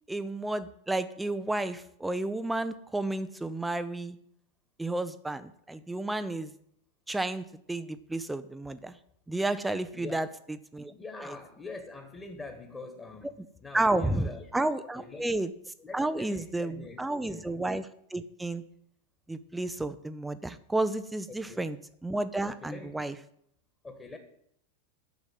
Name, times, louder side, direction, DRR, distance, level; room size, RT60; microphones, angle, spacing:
voice 1, 0.1-4.2 4.8-6.5 7.1-9.0 9.3-10.3 10.7-10.9 11.2-11.4 13.7-15.5 15.9-18.6 19.3-21.8 22.0-23.1, right 2 dB, 5° right, 13 dB, 0.6 m, -31 dB
voice 2, 9.9-10.3 10.9-13.3 13.6-14.5 14.9-15.3 15.8-17.5 21.3-21.7 22.5-23.0 23.8-24.2, left 3 dB, 15° left, 5 dB, 1.7 m, -44 dB
9.8 x 7.3 x 9.3 m, 0.71 s
figure-of-eight pair, 90°, 0 cm